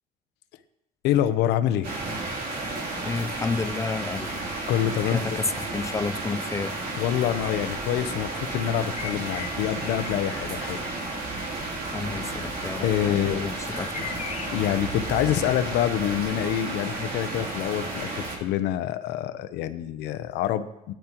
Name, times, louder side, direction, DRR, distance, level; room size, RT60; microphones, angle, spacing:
voice 1, 1.0-1.9 4.7-5.4 7.0-10.8 12.8-13.5 14.5-20.9, left 11 dB, 85° left, 0.8 m, -26 dB
sound 1, 1.8-18.4, right 2 dB, 60° right, 3.1 m, -33 dB
voice 2, 3.0-4.4 5.1-6.8 11.9-14.1, left 4 dB, 20° left, 0.4 m, -31 dB
sound 2, 8.2-16.3, left 7 dB, 40° left, 0.8 m, -42 dB
17.0 x 10.5 x 3.0 m
cardioid pair, 110°, 17 cm